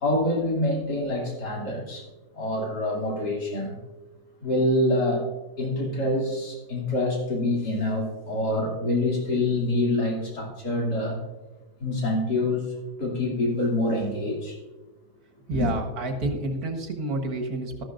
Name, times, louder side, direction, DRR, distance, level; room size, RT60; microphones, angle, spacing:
voice 1, 0.0-2.1 2.3-3.8 4.4-5.3 5.6-11.2 11.8-14.6 15.5-15.7, left 1 dB, 75° left, -2 dB, 3.4 m, -26 dB
voice 2, 15.5-17.8, right 2 dB, 65° right, 4 dB, 1.9 m, -29 dB
13.0 x 12.0 x 2.6 m, 1.1 s
omnidirectional pair, 1.8 m